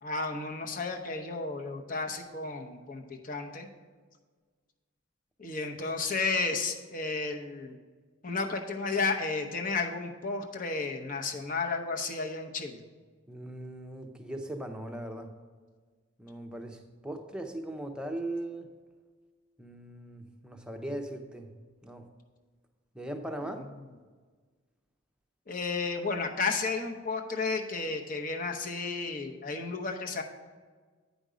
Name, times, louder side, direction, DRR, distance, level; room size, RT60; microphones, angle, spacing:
voice 1, 0.0-3.7 5.4-7.7 8.2-12.8 25.5-30.2, left 4 dB, 40° left, 3 dB, 0.8 m, -32 dB
voice 2, 13.3-15.3 16.2-18.7 19.6-21.5 21.8-22.1 22.9-23.6, right 1 dB, 5° right, 3 dB, 0.6 m, -39 dB
9.2 x 5.2 x 5.0 m, 1.5 s
head